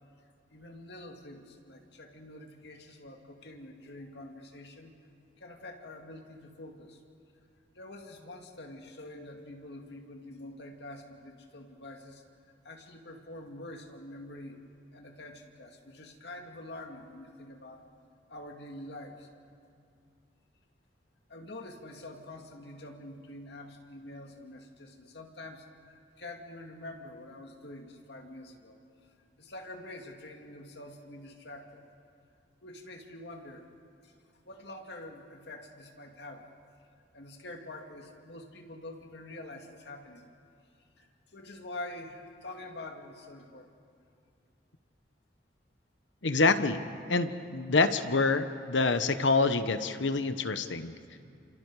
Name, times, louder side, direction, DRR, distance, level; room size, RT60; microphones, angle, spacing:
voice 1, 0.5-4.9 5.4-7.0 7.7-12.2 12.6-14.6 14.9-17.9 18.3-19.3 21.3-28.8 29.4-31.8 32.6-33.6 34.0-34.1 34.4-36.4 37.1-40.3 41.0-43.7, left 1 dB, 65° left, 2 dB, 2.3 m, -46 dB
voice 2, 46.2-46.8 47.1-50.9, left 3 dB, 85° left, 10 dB, 1.1 m, -26 dB
29.5 x 27.5 x 4.9 m, 2.3 s
head